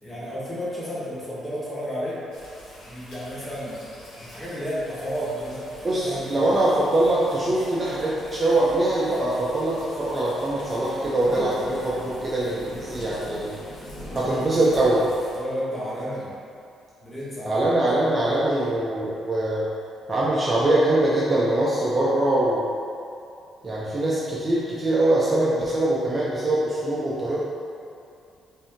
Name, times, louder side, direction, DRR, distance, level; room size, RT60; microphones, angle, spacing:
voice 1, 0.0-2.2 2.9-6.6 15.3-16.3 17.0-17.6, equal, 10° left, -8 dB, 0.9 m, -32 dB
sound 1, 2.3-15.4, equal, 75° left, 1.4 m, -42 dB
voice 2, 5.8-13.5 14.1-15.0 17.5-19.6 20.1-22.7 23.6-27.5, right 1 dB, 20° right, -8 dB, 0.5 m, -23 dB
5.2 x 2.7 x 3.6 m, 2.6 s
cardioid pair, 180°, 0 cm